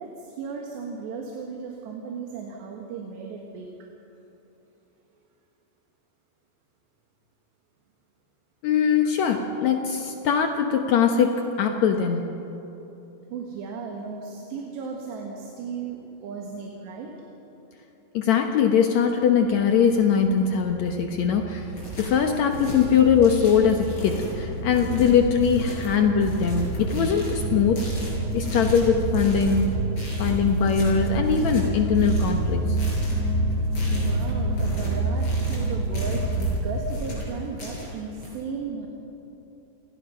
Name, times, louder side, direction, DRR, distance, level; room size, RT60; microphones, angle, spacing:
voice 1, 0.0-3.7 13.3-17.1 33.9-38.9, right 5 dB, 85° right, 0 dB, 3.9 m, -35 dB
voice 2, 8.6-12.3 18.1-21.7 22.0-27.8 28.3-29.7 30.2-32.6, left 7 dB, 80° left, 4 dB, 1.6 m, -21 dB
sound 1, 19.7-37.2, right 2 dB, 55° right, 3.9 m, -28 dB
sound 2, 21.5-38.3, left 1 dB, 30° left, 6.9 m, -38 dB
29.5 x 20.0 x 5.7 m, 3.0 s
omnidirectional pair, 4.8 m